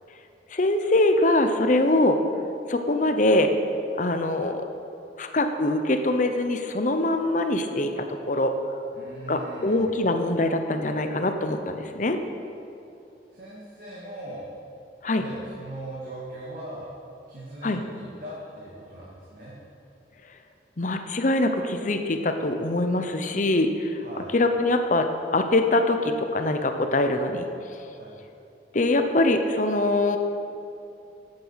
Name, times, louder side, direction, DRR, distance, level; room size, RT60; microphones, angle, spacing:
voice 1, 0.5-2.2 2.7-3.5 4.0-4.6 5.2-8.5 9.3-12.2 15.0-15.2 17.6-17.8 20.8-24.0 24.3-27.5 28.7-30.2, left 2 dB, 45° left, 7 dB, 0.8 m, -23 dB
voice 2, 8.9-9.8 13.3-14.5 15.2-16.9 17.3-19.5 24.0-24.3 27.9-28.2, right 1 dB, 50° right, -7 dB, 2.2 m, -40 dB
13.5 x 9.0 x 5.7 m, 2.7 s
head